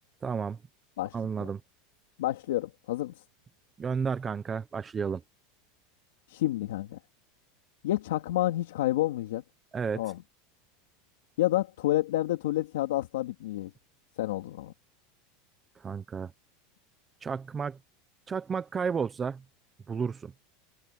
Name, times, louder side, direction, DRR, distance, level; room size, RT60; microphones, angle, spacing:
voice 1, 0.2-0.6 1.1-1.6 3.8-5.2 9.7-10.0 15.8-16.3 17.2-17.8 18.3-19.4 19.9-20.3, right 6 dB, 20° right, 1.0 m, -32 dB
voice 2, 2.2-3.1 6.3-7.0 7.8-9.4 10.0-10.2 11.4-13.7 14.2-14.7, left 15 dB, 90° left, 2.7 m, -29 dB
supercardioid pair, 150°, 0 cm